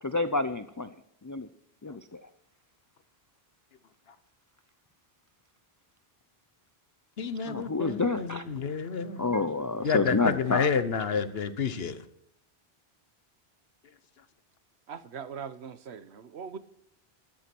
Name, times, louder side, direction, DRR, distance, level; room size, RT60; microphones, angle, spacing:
voice 1, 0.0-0.9 1.3-1.5 1.8-2.3 7.4-8.4 9.2-10.7, left 3 dB, 25° left, 0.5 m, -29 dB
voice 2, 7.2-9.3 9.8-12.0, left 6 dB, 70° left, 1.3 m, -29 dB
voice 3, 14.9-16.6, right 6 dB, 85° right, 1.2 m, -41 dB
12.5 x 11.5 x 6.1 m
omnidirectional pair, 1.1 m